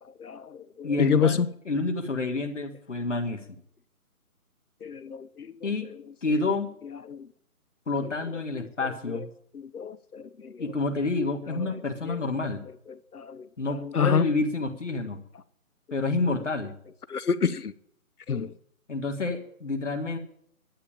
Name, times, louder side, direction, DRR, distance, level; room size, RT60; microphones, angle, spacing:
voice 1, 0.0-1.5 4.8-6.0 6.8-7.3 8.0-8.1 8.5-9.3 9.5-10.6 11.5-12.2 12.9-14.3 16.3-16.4 17.1-17.7 18.3-18.5, left 6 dB, 85° left, 1.0 m, -30 dB
voice 2, 0.8-1.4 1.7-3.4 5.6-5.9 6.2-6.7 7.9-9.3 10.6-12.7 13.6-15.2 15.9-16.7 18.9-20.2, left 3 dB, 55° left, 1.9 m, -28 dB
11.5 x 8.9 x 9.0 m
figure-of-eight pair, 180°, 44 cm